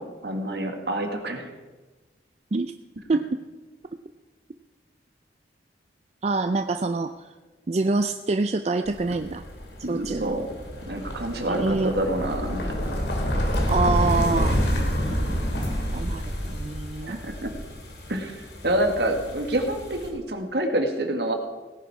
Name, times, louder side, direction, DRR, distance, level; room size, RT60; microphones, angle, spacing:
voice 1, 0.0-1.5 9.8-10.5 10.9-12.7 17.0-17.5 18.1-21.3, right 1 dB, 65° right, 4 dB, 1.8 m, -27 dB
voice 2, 3.1-3.4 6.2-7.3 7.7-9.4 9.9-10.4 11.5-11.9 13.7-14.6 15.9-16.2 16.5-17.2, right 3 dB, 40° right, 8 dB, 0.4 m, -25 dB
sound 1, 8.9-20.1, equal, 75° left, 2.8 m, -28 dB
17.5 x 10.0 x 4.8 m, 1.2 s
head